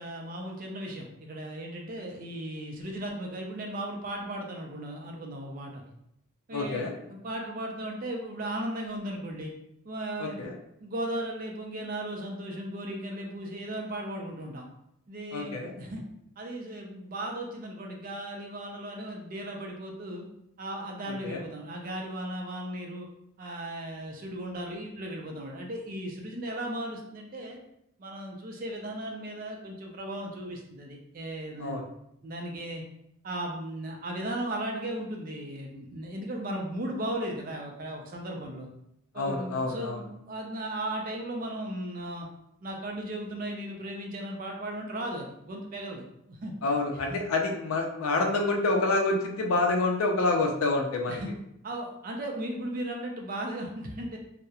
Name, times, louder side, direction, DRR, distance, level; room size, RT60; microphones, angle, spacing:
voice 1, 0.0-5.8 6.5-9.5 9.8-10.4 10.8-14.7 15.1-16.0 16.4-20.3 20.6-23.1 23.4-27.6 28.0-31.8 32.2-32.8 33.2-38.7 39.1-42.3 42.6-46.5 47.1-47.2 51.1-51.3 51.6-54.2, right 1 dB, 40° right, 1 dB, 0.4 m, -36 dB
voice 2, 6.5-6.9 10.2-10.6 15.3-15.7 21.2-21.4 31.6-31.8 39.2-40.0 46.6-51.2, left 2 dB, 75° left, 2 dB, 0.4 m, -27 dB
2.8 x 2.0 x 2.3 m, 0.78 s
head